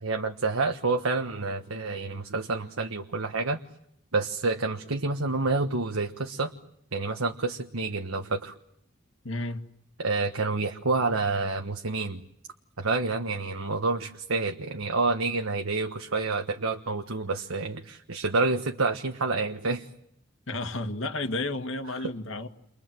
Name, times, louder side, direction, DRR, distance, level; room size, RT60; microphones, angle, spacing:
voice 1, 0.0-3.6 4.1-6.5 6.9-8.5 10.0-12.2 12.8-19.9 21.8-22.1, right 3 dB, 85° right, 1.4 m, -28 dB
voice 2, 9.2-9.6 20.5-22.5, left 2 dB, 65° left, 1.9 m, -32 dB
30.0 x 24.5 x 7.7 m
head